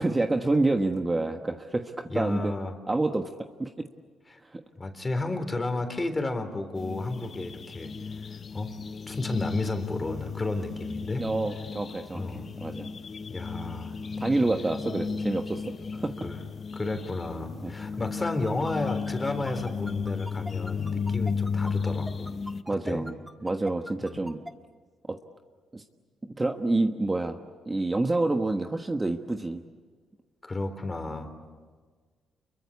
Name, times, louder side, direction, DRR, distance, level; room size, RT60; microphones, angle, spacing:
voice 1, 0.0-2.5 2.9-3.8 4.4-4.6 11.2-12.9 14.2-15.6 15.9-16.1 17.6-17.7 22.7-24.4 25.0-25.2 25.7-25.8 26.4-27.4 27.7-29.6, right 2 dB, 20° right, 5 dB, 1.3 m, -28 dB
voice 2, 2.1-2.7 4.3-4.4 4.8-8.3 8.5-8.7 9.1-11.3 12.1-12.5 13.3-13.9 16.2-16.4 16.7-22.3 22.9-23.1 24.0-24.2 30.4-31.3, left 2 dB, 20° left, 7 dB, 3.7 m, -32 dB
sound 1, 6.8-22.6, left 5 dB, 40° left, 0.9 m, -34 dB
sound 2, 18.2-24.5, equal, ahead, 1.4 m, -41 dB
29.0 x 23.0 x 8.5 m, 1.5 s
cardioid pair, 90°, 0 cm